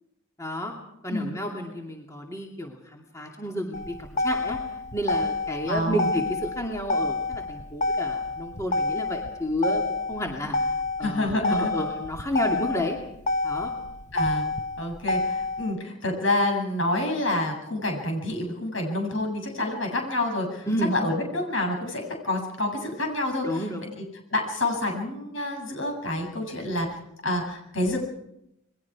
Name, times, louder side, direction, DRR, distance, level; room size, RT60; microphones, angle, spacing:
voice 1, 0.4-0.7 1.0-4.6 4.9-10.6 11.0-13.0 13.4-13.7 20.7-20.9 23.4-23.8, equal, 15° left, 0 dB, 2.6 m, -31 dB
Motor vehicle (road), 3.7-15.7, left 2 dB, 35° left, 1.0 m, -28 dB
voice 2, 5.7-6.1 11.0-11.8 14.1-14.5 14.8-23.6 24.3-26.9 27.2-28.0, left 1 dB, 70° left, 2 dB, 7.7 m, -28 dB
29.0 x 21.5 x 4.8 m, 0.80 s
head